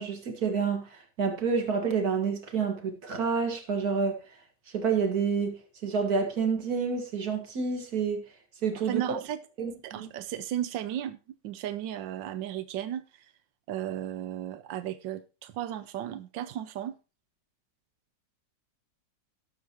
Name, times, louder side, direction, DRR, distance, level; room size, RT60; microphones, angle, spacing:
voice 1, 0.0-4.2 4.7-8.2 8.6-9.0 9.6-10.1, right 5 dB, 55° right, 2.2 m, -29 dB
voice 2, 8.7-9.4 9.8-11.2 11.4-13.3 13.7-16.9, right 11 dB, 85° right, 1.4 m, -35 dB
18.5 x 7.0 x 3.0 m
omnidirectional pair, 2.0 m